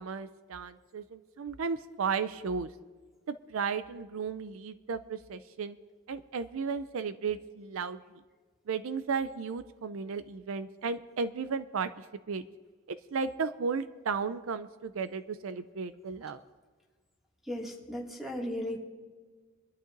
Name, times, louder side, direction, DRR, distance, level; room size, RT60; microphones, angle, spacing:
voice 1, 0.0-2.7 3.3-5.8 6.1-8.0 8.7-12.4 13.1-16.4, right 5 dB, 70° right, 12 dB, 0.5 m, -34 dB
voice 2, 17.5-18.8, left 1 dB, ahead, -2 dB, 2.2 m, -36 dB
25.0 x 12.0 x 2.6 m, 1.4 s
head